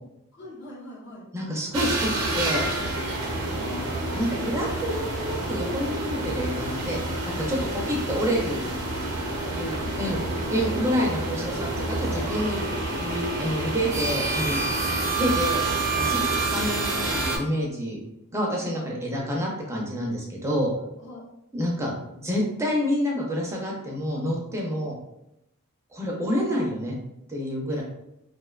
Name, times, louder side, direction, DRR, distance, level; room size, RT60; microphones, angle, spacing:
voice 1, 0.3-1.3 3.4-4.3 9.5-10.5 10.8-11.0 18.4-18.9 21.0-21.2 27.7-27.8, left 1 dB, 55° left, -7 dB, 0.8 m, -42 dB
voice 2, 1.3-2.6 4.1-7.0 7.4-8.6 9.5-10.2 10.5-12.7 13.0-14.7 15.2-15.6 16.0-16.2 16.5-18.0 18.3-20.7 21.5-22.0 22.2-24.9 25.9-26.9 27.3-27.8, equal, 15° right, -2 dB, 0.4 m, -28 dB
sound 1, 1.7-17.4, right 2 dB, 85° right, 0.6 m, -28 dB
2.5 x 2.1 x 2.3 m, 0.84 s
head